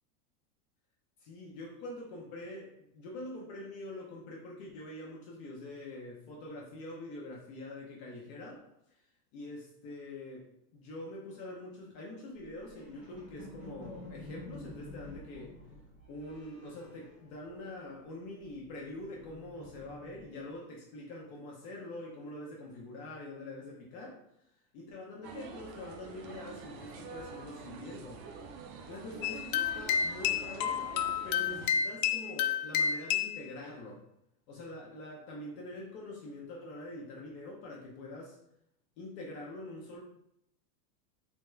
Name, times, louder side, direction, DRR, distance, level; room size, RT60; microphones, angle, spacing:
voice 1, 1.2-8.6 9.3-10.5 10.7-15.6 16.1-24.2 24.7-28.2 28.9-30.8 31.2-34.0 34.5-38.4 39.0-40.0, left 1 dB, 40° left, -2 dB, 0.6 m, -45 dB
sound 1, 12.4-18.0 18.2-20.5, left 2 dB, 5° right, 0.4 m, -51 dB
sound 2, 25.2-31.7, right 5 dB, 80° right, 0.7 m, -46 dB
sound 3, 29.2-33.4, left 8 dB, 85° left, 0.6 m, -30 dB
3.5 x 2.3 x 3.1 m, 0.78 s
supercardioid pair, 165°, 49 cm